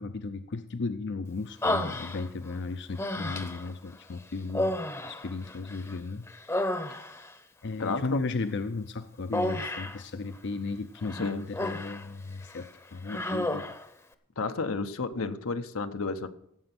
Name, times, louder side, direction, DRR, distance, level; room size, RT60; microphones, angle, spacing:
voice 1, 0.0-4.8 5.1-6.3 7.6-13.7, left 3 dB, 55° left, 10 dB, 0.6 m, -35 dB
Human voice, 1.6-2.5 3.0-3.7 4.5-5.9 6.3-7.3 9.3-10.0 11.0-12.1 12.4-12.6 13.1-13.9, left 1 dB, 15° left, 0.8 m, -31 dB
voice 2, 7.8-8.2 11.1-11.4 14.4-16.3, left 4 dB, 85° left, 8 dB, 1.0 m, -32 dB
16.5 x 7.9 x 6.0 m, 0.73 s
head